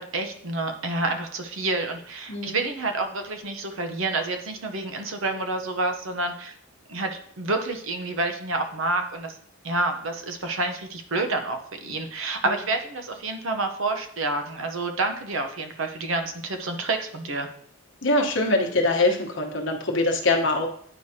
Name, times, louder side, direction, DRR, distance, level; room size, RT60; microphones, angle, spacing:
voice 1, 0.0-6.5 6.9-9.4 9.6-17.5, right 2 dB, 70° right, 5 dB, 0.8 m, -28 dB
voice 2, 18.0-20.7, left 2 dB, 60° left, 2 dB, 1.1 m, -23 dB
9.9 x 4.8 x 2.8 m, 0.64 s
head